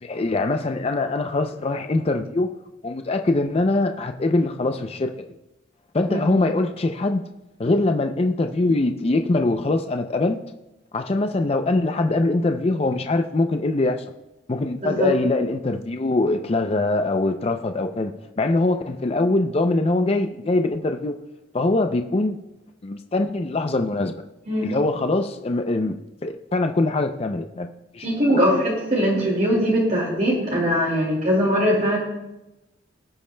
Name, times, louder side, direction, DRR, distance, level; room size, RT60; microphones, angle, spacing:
voice 1, 0.0-2.5 2.8-5.1 5.9-7.2 7.6-10.4 10.9-14.0 14.5-18.1 18.4-21.2 21.5-22.4 22.8-24.1 24.6-26.0 26.2-28.4, left 2 dB, 30° left, 6 dB, 0.4 m, -23 dB
voice 2, 28.0-32.0, equal, 40° right, -3 dB, 2.3 m, -21 dB
19.0 x 8.6 x 2.2 m, 0.98 s
head